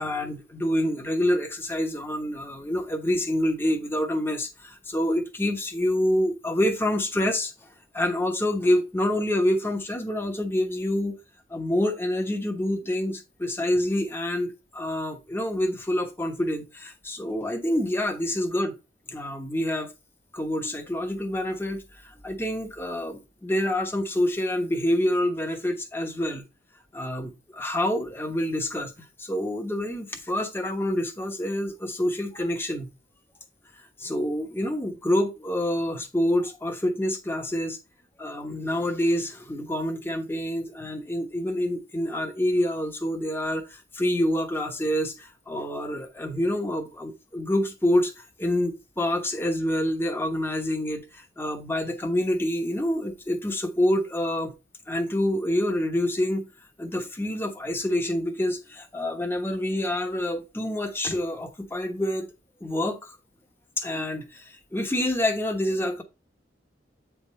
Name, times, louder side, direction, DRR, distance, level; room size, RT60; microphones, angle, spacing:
voice 1, 0.0-7.7 7.9-11.2 11.5-18.7 19.1-19.9 20.3-26.4 26.9-32.9 33.7-37.8 38.2-54.5 54.9-56.5 56.8-62.3 62.6-63.2 63.8-66.0, left 1 dB, 15° left, 1.1 m, -27 dB
8.6 x 3.6 x 4.2 m
head